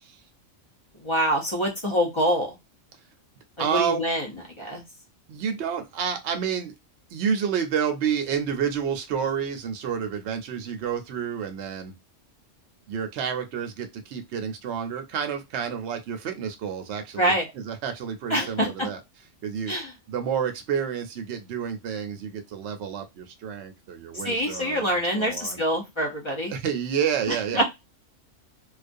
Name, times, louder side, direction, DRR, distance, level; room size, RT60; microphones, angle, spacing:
voice 1, 1.0-2.5 3.7-4.3 4.6-4.8 17.2-17.5 18.3-18.9 19.7-19.9 24.1-26.5 27.3-27.6, equal, 30° left, -1 dB, 0.6 m, -25 dB
voice 2, 3.6-4.0 5.3-6.7 7.1-11.9 12.9-19.0 19.4-19.7 20.1-25.6 26.5-27.6, right 7 dB, 65° right, 6 dB, 0.8 m, -29 dB
2.4 x 2.3 x 2.5 m, 0.21 s
omnidirectional pair, 1.3 m